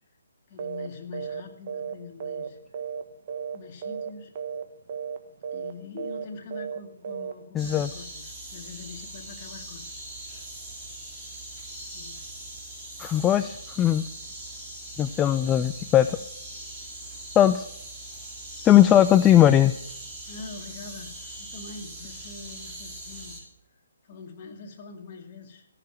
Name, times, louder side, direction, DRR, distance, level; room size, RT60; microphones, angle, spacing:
voice 1, 0.5-2.6 3.5-4.3 5.5-9.9 10.3-10.5 11.9-12.2 20.3-23.5 24.1-25.7, left 4 dB, 40° left, 4 dB, 2.0 m, -43 dB
sound 1, 0.6-1.4 1.7-3.0 3.3-3.6 3.8-4.1 4.4-4.6 4.9-5.2 5.4-5.7 6.0-6.2 6.5-6.8 7.0-7.3, right 7 dB, 45° right, 1.5 m, -34 dB
voice 2, 7.5-7.9 13.0-14.0 15.0-16.2 17.4-17.6 18.6-19.7, left 11 dB, 15° left, 11 dB, 0.4 m, -19 dB
sound 2, 7.6-23.4, right 1 dB, 5° right, 3.0 m, -41 dB
14.5 x 6.9 x 7.7 m, 0.72 s
figure-of-eight pair, 140°, 0 cm